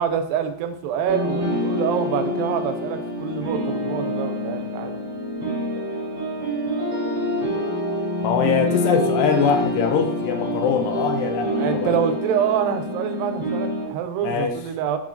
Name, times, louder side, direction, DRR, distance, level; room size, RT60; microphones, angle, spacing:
voice 1, 0.0-4.9 11.5-15.0, right 8 dB, 90° right, 8 dB, 2.3 m, -26 dB
sound 1, 1.1-13.9, left 1 dB, 65° right, 1.2 m, -26 dB
voice 2, 8.2-12.0 14.2-14.6, left 7 dB, 80° left, 5 dB, 2.2 m, -23 dB
5.0 x 3.5 x 2.5 m, 0.67 s
omnidirectional pair, 4.0 m